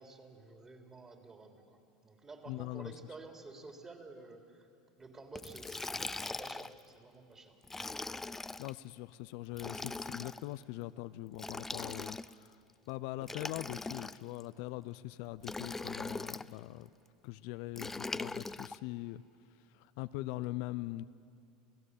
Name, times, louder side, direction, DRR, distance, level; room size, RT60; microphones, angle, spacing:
voice 1, 0.0-4.7 5.0-7.6, right 3 dB, 25° right, 4 dB, 3.6 m, -51 dB
voice 2, 2.5-3.0 8.6-12.6 12.9-16.9 17.2-19.2 19.7-21.0, left 17 dB, 65° left, 15 dB, 0.5 m, -42 dB
Liquid, 5.4-6.8 7.6-8.7 9.5-10.4 11.3-12.5 13.2-14.4 15.4-16.5 17.8-18.8, left 3 dB, 15° left, 0.6 m, -41 dB
28.5 x 16.0 x 8.3 m, 2.4 s
hypercardioid pair, 80°, 2 cm